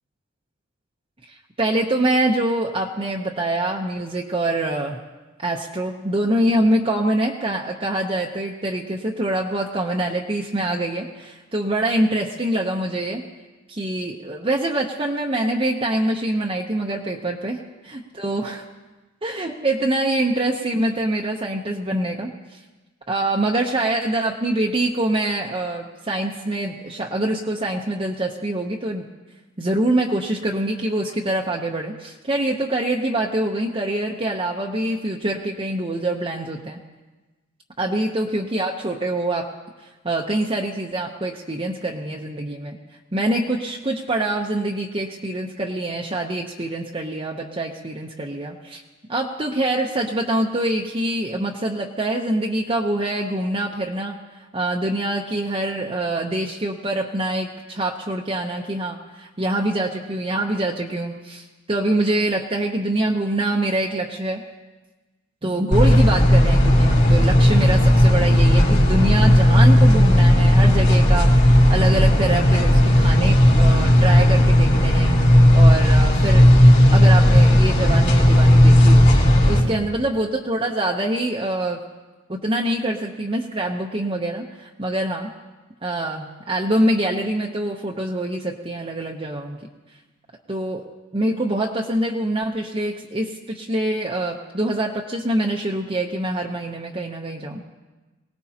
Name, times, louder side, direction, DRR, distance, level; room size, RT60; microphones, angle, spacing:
voice 1, 1.3-5.0 5.4-13.2 13.7-18.6 19.2-22.6 23.1-29.0 29.6-36.8 37.8-39.5 40.0-42.8 43.1-48.8 49.1-54.2 54.5-64.4 65.4-76.5 76.9-79.1 79.4-81.8 82.3-85.3 85.8-89.6 90.5-90.9 91.1-97.6, right 1 dB, 25° right, 0 dB, 0.8 m, -25 dB
sound 1, 65.7-79.6, equal, 55° left, 3.5 m, -14 dB
23.5 x 18.0 x 2.9 m, 1.2 s
head